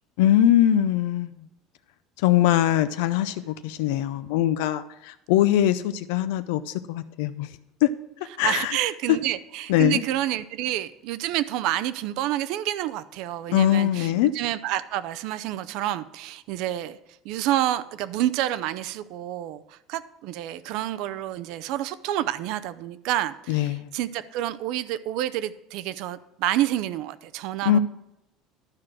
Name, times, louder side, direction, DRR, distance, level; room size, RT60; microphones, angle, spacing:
voice 1, 0.2-1.5 2.2-7.5 7.8-7.9 8.4-8.8 9.1-9.2 9.7-10.0 13.5-14.3 23.5-23.9 27.7-27.8, left 12 dB, 80° left, 11 dB, 0.5 m, -22 dB
voice 2, 8.4-17.0 17.2-27.8, right 13 dB, 60° right, 14 dB, 0.5 m, -28 dB
12.5 x 4.8 x 6.0 m, 0.89 s
cardioid pair, 150°, 0 cm